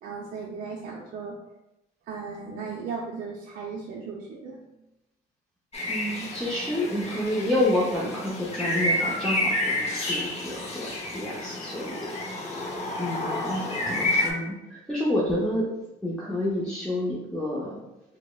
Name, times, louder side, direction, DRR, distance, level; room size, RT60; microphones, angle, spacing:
voice 1, 0.0-1.4 2.1-4.6, right 5 dB, 55° right, -2 dB, 0.5 m, -36 dB
sound 1, 5.7-14.3, left 1 dB, 40° left, 0.8 m, -30 dB
voice 2, 5.9-11.9 13.0-15.7 16.0-17.8, left 1 dB, 5° left, -8 dB, 0.7 m, -29 dB
4.8 x 2.0 x 2.3 m, 0.95 s
cardioid pair, 110°, 17 cm